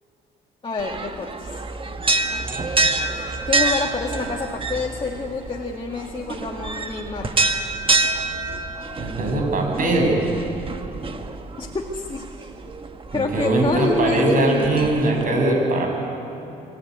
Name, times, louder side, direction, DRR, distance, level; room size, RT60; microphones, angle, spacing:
voice 1, 0.6-1.5 3.5-7.4 11.6-12.5 13.1-15.0, left 3 dB, 30° left, 0 dB, 2.2 m, -27 dB
sound 1, 0.8-15.2, right 3 dB, 30° right, 1.5 m, -27 dB
voice 2, 9.0-10.1 13.1-15.9, right 2 dB, 55° right, 1 dB, 7.3 m, -21 dB
24.0 x 15.5 x 9.6 m, 2.9 s
cardioid pair, 80°, 17 cm